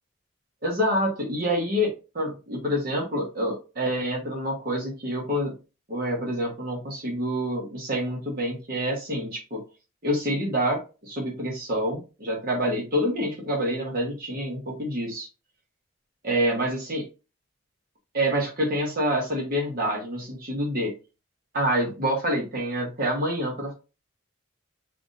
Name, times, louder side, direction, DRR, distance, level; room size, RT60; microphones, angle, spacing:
voice 1, 0.6-5.5 5.9-9.6 10.0-15.3 16.2-17.0 18.1-20.9 21.5-23.7, equal, 45° right, -1 dB, 1.2 m, -27 dB
5.8 x 2.5 x 2.6 m, 0.31 s
head